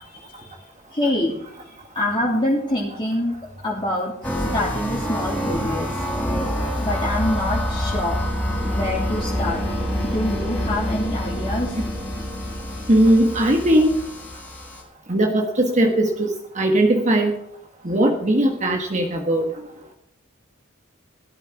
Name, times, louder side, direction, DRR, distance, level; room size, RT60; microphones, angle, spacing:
voice 1, 0.1-0.5 0.9-1.3 1.9-5.9 6.8-8.2 8.6-9.6 10.0-11.7, left 1 dB, 20° left, -5 dB, 2.9 m, -25 dB
sound 1, 4.2-14.8, equal, 5° left, 4.6 m, -26 dB
voice 2, 12.9-14.0 15.1-17.3 17.8-19.4, right 1 dB, 35° right, 3 dB, 1.4 m, -19 dB
17.0 x 12.5 x 4.6 m, 0.76 s
head